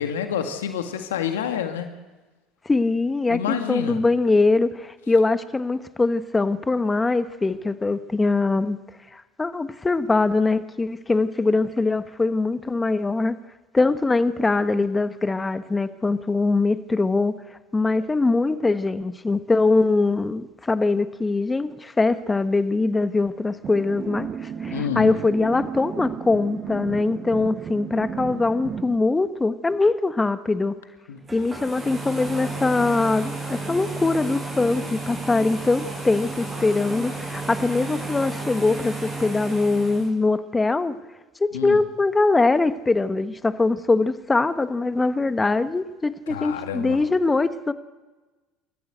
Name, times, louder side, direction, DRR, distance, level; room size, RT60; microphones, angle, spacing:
voice 1, 0.0-1.9 3.3-4.0 24.7-25.2 31.1-31.2 41.5-41.8 46.3-47.0, left 9 dB, 85° left, 6 dB, 1.8 m, -28 dB
voice 2, 2.6-8.8 9.1-13.3 13.7-17.4 17.7-30.7 31.3-40.9 41.6-47.7, left 3 dB, 20° left, 11 dB, 1.3 m, -22 dB
sound 1, 23.6-29.0, right 7 dB, 40° right, 1.0 m, -34 dB
sound 2, 31.2-40.1, right 3 dB, 20° right, 7.4 m, -33 dB
28.5 x 14.0 x 8.1 m, 1.2 s
hypercardioid pair, 70°, 0 cm